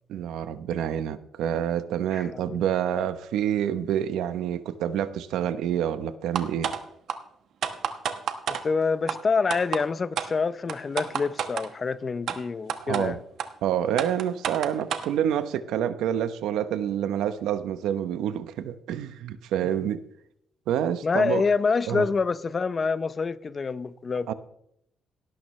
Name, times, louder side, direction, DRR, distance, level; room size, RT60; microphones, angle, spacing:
voice 1, 0.1-6.7 12.8-13.2 13.6-20.0 20.7-21.4 21.9-22.1 24.3-24.4, right 10 dB, 85° right, 0.8 m, -27 dB
voice 2, 2.1-2.6 8.5-13.2 19.8-19.9 21.0-24.3, left 4 dB, 35° left, 0.6 m, -27 dB
sound 1, 6.4-6.8 7.1-7.2 7.6-8.6 9.1-9.2 9.5-9.8 10.2-10.3 10.7-11.7 12.3-12.4 12.7-13.0 13.4-13.5 14.0-15.1, right 8 dB, 70° right, 1.1 m, -29 dB
18.0 x 12.0 x 3.2 m
cardioid pair, 90°, 0 cm